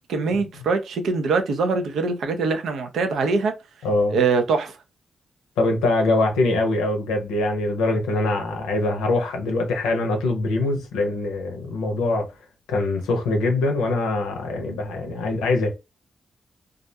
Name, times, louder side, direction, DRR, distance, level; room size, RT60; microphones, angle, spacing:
voice 1, 0.1-3.5 4.1-4.7, right 4 dB, 75° right, 0.5 m, -23 dB
voice 2, 3.8-4.2 5.6-12.3 12.7-15.7, left 2 dB, 90° left, 0.6 m, -23 dB
2.4 x 2.1 x 2.7 m
supercardioid pair, 45°, 0 cm